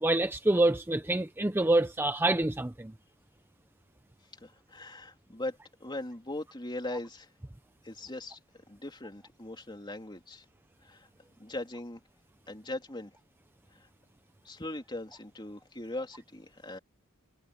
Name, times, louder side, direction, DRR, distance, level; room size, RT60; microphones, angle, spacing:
voice 1, 0.0-2.9, right 2 dB, 10° right, 0.6 m, -26 dB
voice 2, 4.4-7.3 7.8-8.4 8.7-10.4 10.8-11.1 11.4-12.0 12.5-13.1 14.4-16.8, left 2 dB, 20° left, 3.1 m, -40 dB
head